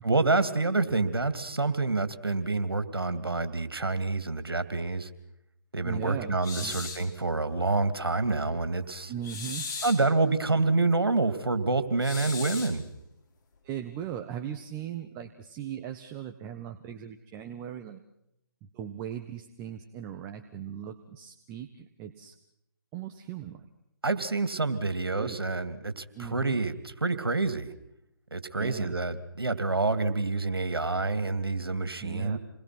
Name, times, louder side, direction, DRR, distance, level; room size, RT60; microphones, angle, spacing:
voice 1, 0.0-5.1 5.7-9.1 9.8-12.8 24.0-27.7 28.3-32.4, right 3 dB, 90° right, 11 dB, 2.7 m, -27 dB
voice 2, 5.8-6.7 9.1-9.7 13.6-18.0 18.7-22.3 22.9-23.7 25.2-25.4 26.1-26.6 28.6-28.9 32.0-32.4, right 10 dB, 20° right, 6 dB, 1.3 m, -39 dB
sound 1, 6.4-7.1 9.2-10.1 12.0-12.8, left 4 dB, 50° left, 5.2 m, -37 dB
29.0 x 21.5 x 6.1 m, 0.81 s
figure-of-eight pair, 150°, 12 cm